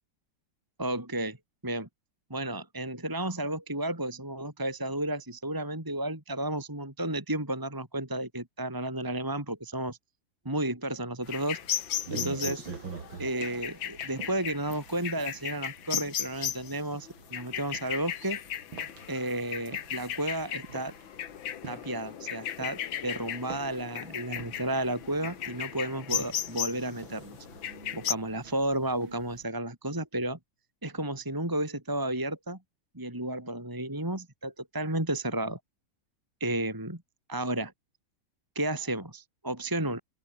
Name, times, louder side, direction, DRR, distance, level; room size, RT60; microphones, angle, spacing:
voice 1, 0.8-1.4 1.6-1.9 2.3-10.0 10.4-11.6 12.1-12.6 13.2-18.4 19.1-20.9 21.7-27.4 27.9-30.4 30.8-32.6 32.9-35.6 36.4-37.0 37.3-37.7 38.5-40.0, right 1 dB, 10° right, 2.7 m, -32 dB
sound 1, 11.3-28.1, left 10 dB, 80° left, 2.0 m, -36 dB
sound 2, 11.3-29.4, right 5 dB, 80° right, 3.5 m, -47 dB
open air
omnidirectional pair, 2.1 m